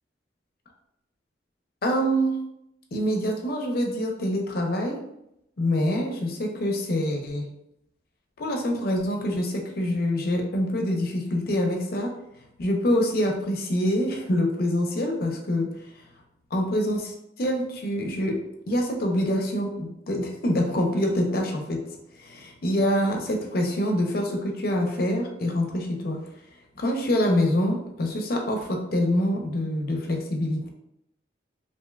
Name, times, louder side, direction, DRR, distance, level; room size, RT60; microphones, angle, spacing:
voice 1, 1.8-2.4 2.9-5.0 5.6-7.5 8.4-12.1 12.6-15.7 16.5-18.4 18.7-21.8 22.2-26.2 26.8-30.7, equal, 60° left, 2 dB, 0.6 m, -25 dB
3.2 x 2.6 x 2.3 m, 0.81 s
head